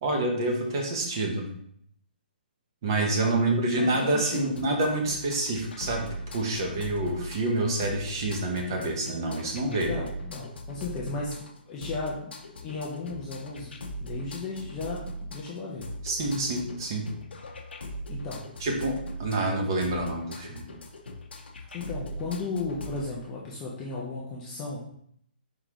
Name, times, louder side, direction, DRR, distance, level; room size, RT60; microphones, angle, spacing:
voice 1, 0.0-1.5 2.8-6.1 6.3-9.9 16.0-17.1 18.6-20.7, right 2 dB, 25° right, 2 dB, 0.7 m, -27 dB
voice 2, 3.2-4.5 9.9-11.3 11.7-15.9 18.1-18.7 21.7-25.0, left 3 dB, 10° left, -5 dB, 0.3 m, -35 dB
sound 1, 4.3-23.0, equal, 90° left, 0.7 m, -40 dB
4.7 x 3.8 x 2.9 m, 0.69 s
hypercardioid pair, 180°, 6 cm